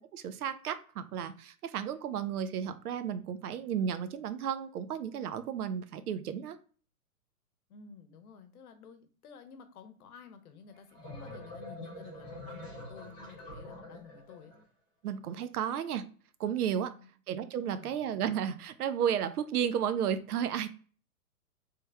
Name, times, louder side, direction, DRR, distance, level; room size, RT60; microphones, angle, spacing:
voice 1, 0.0-6.6 15.0-16.1 16.4-16.9 17.3-20.7, right 8 dB, 75° right, 11 dB, 0.6 m, -33 dB
voice 2, 7.7-14.6 16.9-17.1 17.8-18.1, left 6 dB, 70° left, 8 dB, 0.8 m, -52 dB
sound 1, 10.7-14.6, left 1 dB, 10° right, 0.4 m, -45 dB
3.2 x 2.1 x 3.4 m, 0.40 s
hypercardioid pair, 165°, 45 cm